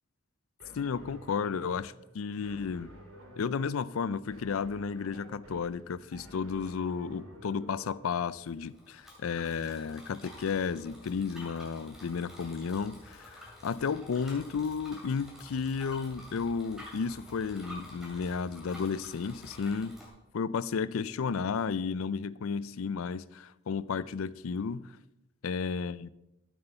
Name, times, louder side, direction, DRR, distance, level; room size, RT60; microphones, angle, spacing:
sound 1, 0.6-7.9, right 1 dB, 80° right, 2.5 m, -51 dB
voice 1, 0.7-2.9 3.4-20.0 20.3-24.9 25.4-26.1, left 5 dB, 85° left, 0.4 m, -33 dB
Bicycle, 8.3-20.1, left 1 dB, ahead, 2.6 m, -50 dB
12.5 x 8.0 x 4.4 m
head